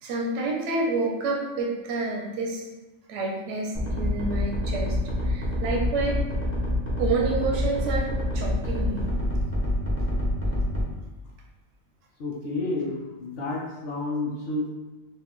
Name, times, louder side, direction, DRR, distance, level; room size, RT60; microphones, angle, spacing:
voice 1, 0.0-2.7 3.1-5.0 5.2-6.2 7.0-9.0, right 3 dB, 70° right, -1 dB, 0.9 m, -28 dB
sound 1, 3.7-10.8, left 1 dB, 20° right, 0.3 m, -26 dB
voice 2, 12.2-14.7, left 2 dB, 65° left, -2 dB, 0.6 m, -30 dB
2.4 x 2.1 x 3.6 m, 1.1 s
omnidirectional pair, 1.4 m